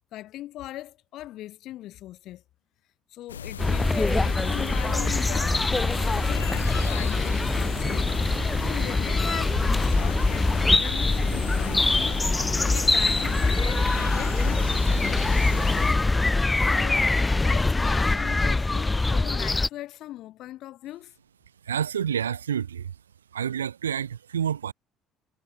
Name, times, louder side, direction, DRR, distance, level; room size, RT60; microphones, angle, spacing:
voice 1, 0.1-2.4 3.1-15.7 16.7-17.1 17.4-21.1, left 14 dB, 55° left, 4.5 m, -40 dB
sound 1, 3.3-15.9, left 8 dB, 80° left, 3.5 m, -38 dB
sound 2, 3.6-19.7, left 2 dB, 15° left, 3.0 m, -23 dB
voice 2, 21.6-22.9 23.3-24.7, right 8 dB, 80° right, 4.9 m, -28 dB
figure-of-eight pair, 55°, 0 cm